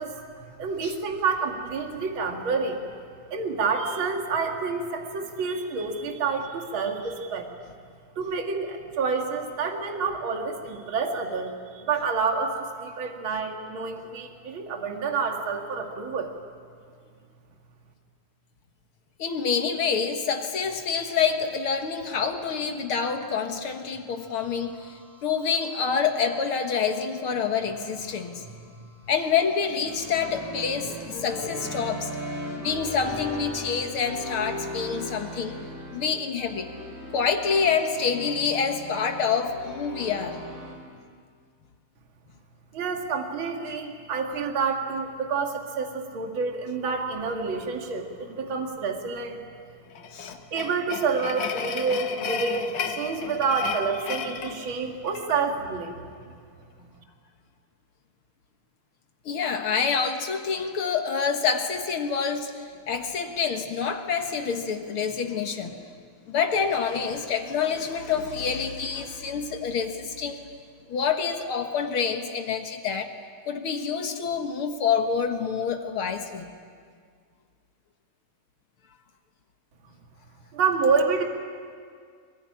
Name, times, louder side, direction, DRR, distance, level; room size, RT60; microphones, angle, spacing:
voice 1, 0.0-2.8 3.3-7.5 8.2-16.3 42.7-49.4 50.5-55.9 80.5-81.2, right 5 dB, 45° right, 3 dB, 2.6 m, -28 dB
voice 2, 19.2-28.6 29.1-32.1 32.6-35.6 35.9-36.7 37.1-40.4 50.1-50.4 59.3-65.8 66.3-70.4 70.9-73.1 73.5-76.5, left 6 dB, 50° left, 5 dB, 1.9 m, -27 dB
sound 1, 24.2-40.8, equal, 30° right, 4.4 m, -39 dB
sound 2, 49.9-55.4, left 6 dB, 65° left, 1.1 m, -34 dB
23.0 x 21.5 x 9.9 m, 2.1 s
omnidirectional pair, 3.5 m